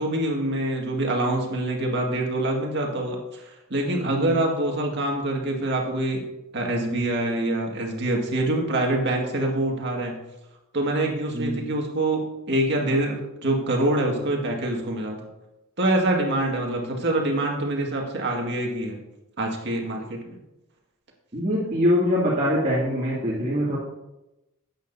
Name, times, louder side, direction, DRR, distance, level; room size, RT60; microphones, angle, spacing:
voice 1, 0.0-6.2 6.5-10.2 10.7-15.2 15.8-19.0 19.4-20.4, right 1 dB, 55° right, 0 dB, 1.9 m, -25 dB
voice 2, 4.0-4.4 11.3-11.6 21.3-23.8, equal, 35° right, -8 dB, 2.3 m, -23 dB
13.0 x 8.9 x 2.7 m, 0.94 s
head